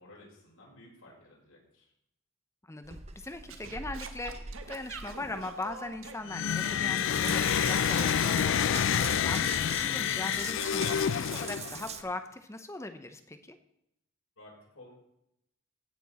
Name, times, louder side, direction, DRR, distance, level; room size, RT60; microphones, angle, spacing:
voice 1, 0.0-1.9 14.4-14.9, left 1 dB, 85° left, -4 dB, 5.6 m, -54 dB
voice 2, 2.7-10.9 11.1-13.6, left 2 dB, 15° left, 8 dB, 0.7 m, -40 dB
Water tap faucet / Bathtub (filling or washing) / Drip, 2.8-12.0, right 7 dB, 30° right, 0.8 m, -43 dB
Singing / Scratching (performance technique), 3.5-8.8, right 5 dB, 75° right, 1.2 m, -45 dB
sound 1, 6.3-11.9, left 9 dB, 65° left, 0.4 m, -28 dB
16.5 x 7.2 x 4.1 m, 0.78 s
head